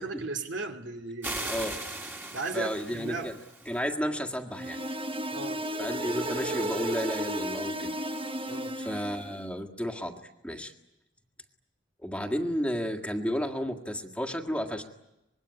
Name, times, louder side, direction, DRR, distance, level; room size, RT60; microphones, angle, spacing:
voice 1, 0.0-1.5 2.3-3.3 5.3-5.7 8.5-8.8, right 3 dB, 70° right, 2.5 m, -36 dB
sound 1, 1.2-3.8, right 2 dB, 10° right, 2.2 m, -38 dB
voice 2, 1.5-1.8 2.5-3.4 3.6-4.8 5.8-7.9 8.8-10.7 12.0-14.8, equal, 5° left, 1.8 m, -32 dB
sound 2, 4.5-9.3, right 1 dB, 30° right, 1.2 m, -33 dB
25.5 x 21.5 x 9.8 m
head